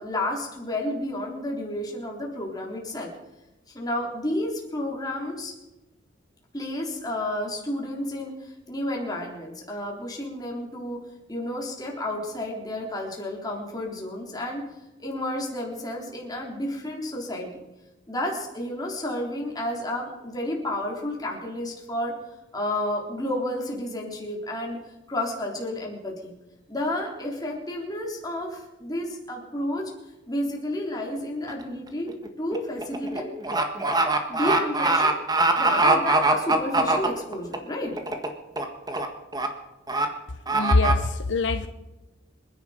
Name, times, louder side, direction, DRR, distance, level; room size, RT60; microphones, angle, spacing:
voice 1, 0.0-3.1 3.7-5.5 6.5-11.0 11.3-14.7 15.0-17.5 18.1-22.1 22.5-24.8 25.1-26.3 26.7-29.9 30.3-32.1 32.4-33.3 34.3-35.2 35.6-38.0, left 1 dB, 20° left, -1 dB, 3.6 m, -31 dB
sound 1, 31.5-31.7 32.1-37.6 38.0-38.3 38.6-39.1 39.3-39.5 39.9-40.1 40.5-40.9, right 2 dB, 20° right, 1.6 m, -22 dB
voice 2, 40.5-41.7, left 2 dB, 70° left, 7 dB, 0.9 m, -23 dB
26.5 x 10.5 x 5.1 m, 1.0 s
head